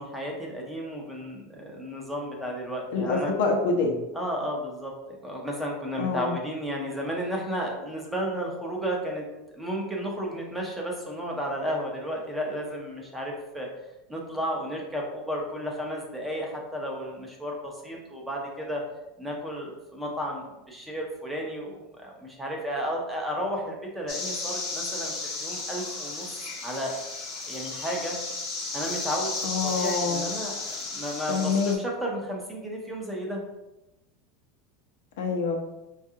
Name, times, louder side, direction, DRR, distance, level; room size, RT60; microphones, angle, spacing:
voice 1, 0.0-3.3 4.1-9.3 9.5-13.7 14.1-18.8 19.2-26.3 26.6-27.0 27.4-28.2 28.7-29.3 29.6-33.4, equal, 5° right, -1 dB, 0.6 m, -33 dB
voice 2, 2.9-4.0 6.0-6.4 29.4-30.3 31.3-31.8 35.2-35.6, left 4 dB, 80° left, 1 dB, 0.7 m, -26 dB
sound 1, 24.1-31.8, left 3 dB, 35° left, 0.7 m, -34 dB
4.5 x 2.4 x 2.7 m, 0.95 s
supercardioid pair, 160°, 0 cm